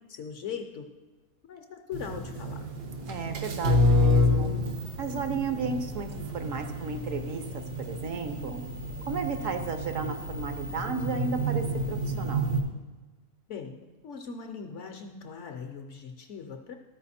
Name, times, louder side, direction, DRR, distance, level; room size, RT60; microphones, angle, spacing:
voice 1, 0.1-0.9 1.5-2.7 13.5-16.8, left 6 dB, 60° left, 5 dB, 0.8 m, -40 dB
sound 1, 1.9-12.6, left 1 dB, 80° right, 1.5 m, -29 dB
voice 2, 3.1-4.5 5.0-8.6 9.1-12.6, right 5 dB, 65° right, 7 dB, 1.0 m, -34 dB
13.5 x 4.6 x 4.2 m, 1.2 s
omnidirectional pair, 1.6 m